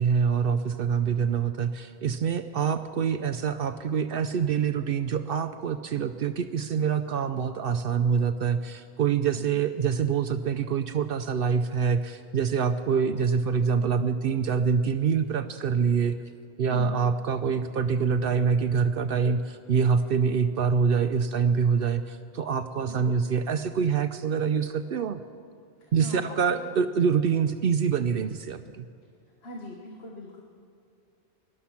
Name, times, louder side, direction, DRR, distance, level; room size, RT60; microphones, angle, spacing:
voice 1, 0.0-16.2 16.6-25.2 25.9-28.9, right 6 dB, 65° right, 9 dB, 0.7 m, -25 dB
voice 2, 16.7-17.0 22.9-23.1 25.8-26.6 29.4-30.4, left 1 dB, 65° left, 0 dB, 1.6 m, -42 dB
19.0 x 11.5 x 5.8 m, 2.3 s
omnidirectional pair, 1.1 m